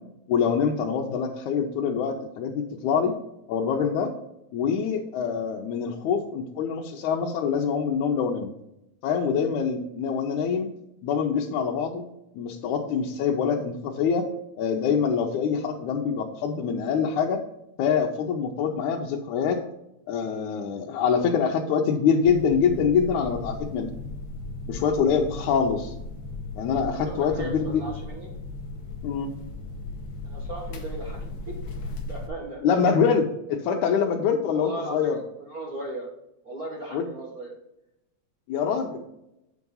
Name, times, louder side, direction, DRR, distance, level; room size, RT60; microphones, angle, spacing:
voice 1, 0.3-3.1 3.5-4.1 4.5-8.5 9.0-10.7 11.0-12.0 12.4-14.3 14.6-17.4 17.8-19.6 20.1-23.9 24.7-25.9 26.6-27.8 29.0-29.3 32.6-35.2 36.9-37.0 38.5-39.0, left 6 dB, 80° left, 0 dB, 2.2 m, -25 dB
sound 1, 22.2-32.3, left 3 dB, 60° left, 1.3 m, -36 dB
voice 2, 26.7-28.3 30.2-31.2 32.0-32.9 34.5-36.1 36.4-37.5, right 2 dB, 50° right, -1 dB, 1.1 m, -37 dB
8.0 x 4.8 x 5.4 m, 0.86 s
omnidirectional pair, 3.4 m